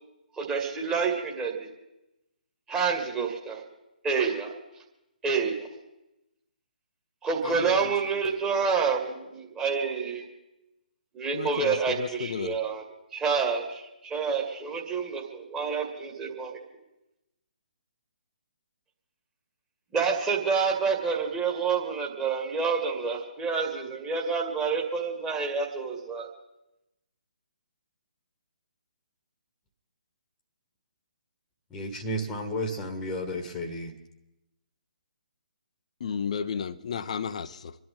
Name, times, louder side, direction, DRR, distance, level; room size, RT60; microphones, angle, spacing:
voice 1, 0.4-1.7 2.7-3.6 4.0-4.5 5.2-5.7 7.2-10.2 11.1-12.8 13.1-16.6 19.9-26.3, right 5 dB, 10° right, 2.3 m, -28 dB
voice 2, 7.4-7.9 11.3-12.6 36.0-37.8, left 6 dB, 45° left, 0.7 m, -33 dB
voice 3, 31.7-33.9, equal, 10° left, 1.5 m, -32 dB
27.5 x 11.0 x 3.9 m
figure-of-eight pair, 135°, 5 cm